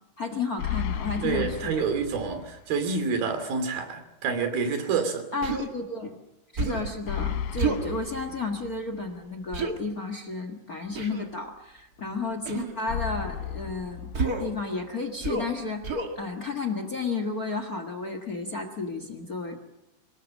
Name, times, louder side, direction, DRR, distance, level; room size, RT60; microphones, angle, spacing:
voice 1, 0.2-1.8 5.3-6.1 6.5-14.1 14.4-19.6, left 3 dB, 50° left, 8 dB, 1.1 m, -32 dB
sound 1, 0.6-2.6 2.9-3.0 7.1-9.1 12.9-14.9, left 9 dB, 75° left, 2.6 m, -34 dB
voice 2, 1.2-5.2, right 5 dB, 70° right, 8 dB, 4.5 m, -28 dB
Human voice, 5.4-5.7 6.6-6.9 7.6-7.9 9.5-9.7 10.9-11.3 12.5-12.7 14.1-14.5 15.2-15.5 15.8-16.1, right 3 dB, 35° right, 1.6 m, -29 dB
24.5 x 20.0 x 7.4 m, 0.92 s
omnidirectional pair, 4.4 m